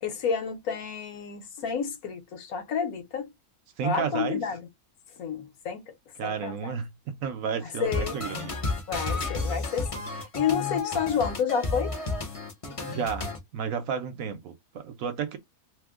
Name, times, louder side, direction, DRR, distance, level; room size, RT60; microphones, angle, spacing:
voice 1, 0.0-3.3 3.8-4.7 5.2-5.8 6.2-6.7 7.8-8.2 8.9-11.9, left 7 dB, 70° left, 1.3 m, -30 dB
voice 2, 3.8-4.4 6.2-8.6 12.9-13.3 13.5-15.4, right 7 dB, 70° right, 1.0 m, -32 dB
sound 1, 7.8-13.4, left 3 dB, 30° left, 0.6 m, -32 dB
3.0 x 2.1 x 3.5 m
omnidirectional pair, 1.6 m